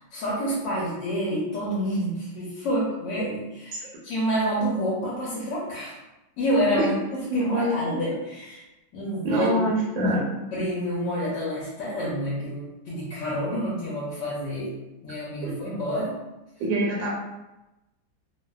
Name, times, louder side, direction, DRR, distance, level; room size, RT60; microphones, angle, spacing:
voice 1, 0.0-6.0 6.4-8.6 8.9-10.1 10.5-14.7 15.0-16.2, equal, 75° left, -6 dB, 1.2 m, -28 dB
voice 2, 7.3-7.7 9.2-10.3 15.4-15.5 16.6-17.1, right 1 dB, 80° right, -4 dB, 1.3 m, -24 dB
3.1 x 2.1 x 2.2 m, 0.98 s
omnidirectional pair, 2.1 m